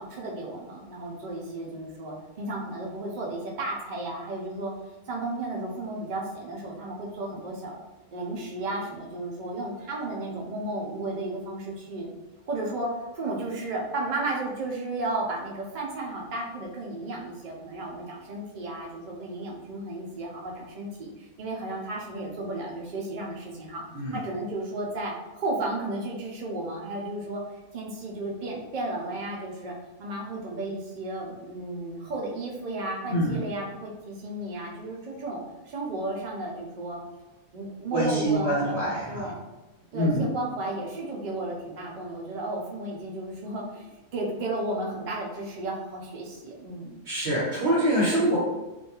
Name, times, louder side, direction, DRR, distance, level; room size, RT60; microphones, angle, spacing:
voice 1, 0.0-4.7 5.1-7.8 8.1-12.1 12.5-23.8 24.1-27.4 27.7-37.0 37.5-39.4 39.9-47.0, right 2 dB, 75° right, -2 dB, 0.4 m, -33 dB
voice 2, 37.9-39.3 39.9-40.3 47.0-48.4, right 1 dB, 50° right, -8 dB, 1.0 m, -25 dB
2.6 x 2.2 x 2.8 m, 1.1 s
omnidirectional pair, 1.5 m